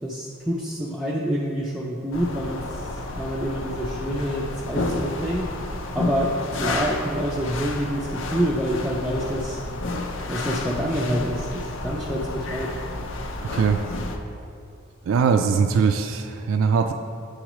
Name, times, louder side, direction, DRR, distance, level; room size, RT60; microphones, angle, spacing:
voice 1, 0.0-5.5 5.9-9.6 10.3-12.8, equal, ahead, -5 dB, 0.4 m, -27 dB
sound 1, 2.1-14.2, left 2 dB, 65° left, 0.5 m, -31 dB
voice 2, 15.1-16.9, right 6 dB, 75° right, 6 dB, 0.3 m, -21 dB
8.6 x 4.9 x 3.0 m, 2.4 s
head